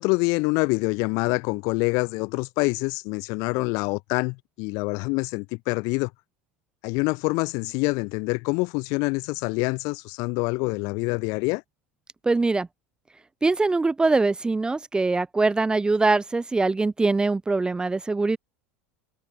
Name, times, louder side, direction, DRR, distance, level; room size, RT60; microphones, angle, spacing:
voice 1, 0.0-6.1 6.8-11.6, left 29 dB, 60° left, 0.8 m, -26 dB
voice 2, 12.2-12.7 13.4-18.4, right 3 dB, 15° right, 0.7 m, -22 dB
hypercardioid pair, 90°, 7 cm